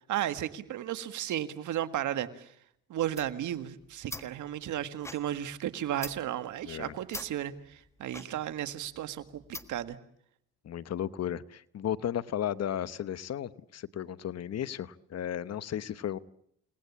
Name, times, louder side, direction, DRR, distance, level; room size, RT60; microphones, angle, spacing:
voice 1, 0.1-2.5 2.9-9.4 9.7-10.0, right 11 dB, 75° right, 11 dB, 1.8 m, -34 dB
sound 1, 3.0-10.0, left 2 dB, 10° left, 1.5 m, -46 dB
voice 2, 6.6-6.9 10.6-16.2, left 10 dB, 55° left, 16 dB, 1.0 m, -34 dB
29.5 x 19.0 x 8.4 m, 0.72 s
cardioid pair, 90°, 30 cm